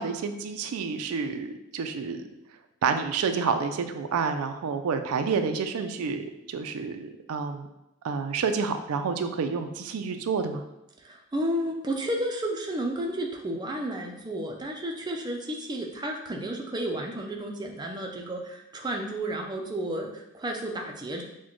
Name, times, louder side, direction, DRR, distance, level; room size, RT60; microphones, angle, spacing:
voice 1, 0.0-2.2 2.8-7.7 8.0-10.6, right 5 dB, 85° right, 7 dB, 0.4 m, -29 dB
voice 2, 11.0-21.2, right 1 dB, 20° right, 1 dB, 0.4 m, -32 dB
6.1 x 2.2 x 3.0 m, 0.92 s
head